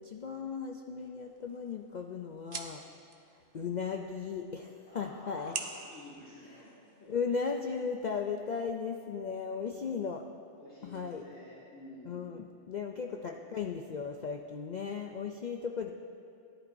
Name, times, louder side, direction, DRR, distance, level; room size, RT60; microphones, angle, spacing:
voice 1, 0.0-2.8 3.5-5.6 7.1-10.2 10.8-11.2 12.0-15.9, left 5 dB, 60° left, 2 dB, 0.4 m, -36 dB
sound 1, 1.2-7.3, right 4 dB, 50° right, 0.9 m, -47 dB
voice 2, 4.9-7.1 10.6-12.2 13.0-13.2, left 1 dB, 90° left, -11 dB, 3.4 m, -51 dB
17.0 x 11.0 x 2.6 m, 2.6 s
omnidirectional pair, 1.3 m